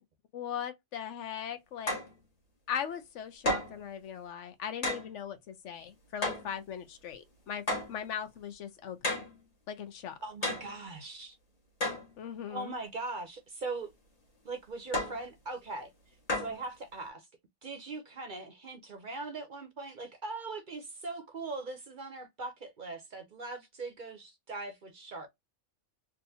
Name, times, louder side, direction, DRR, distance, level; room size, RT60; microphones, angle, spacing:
voice 1, 0.3-2.0 2.7-9.3 9.7-10.2 12.2-12.8, left 8 dB, 70° left, 1.0 m, -39 dB
sound 1, 1.9-2.1 3.4-3.8 4.8-5.1 6.2-6.5 7.7-8.0 9.0-9.4 10.4-10.8 11.8-12.1 14.9-15.2 16.3-16.6, left 1 dB, 30° left, 1.3 m, -32 dB
voice 2, 10.2-11.4 12.5-13.9 14.4-15.9 16.3-17.3 17.6-25.3, right 3 dB, 45° right, 0.7 m, -40 dB
3.6 x 2.6 x 2.7 m
omnidirectional pair, 1.3 m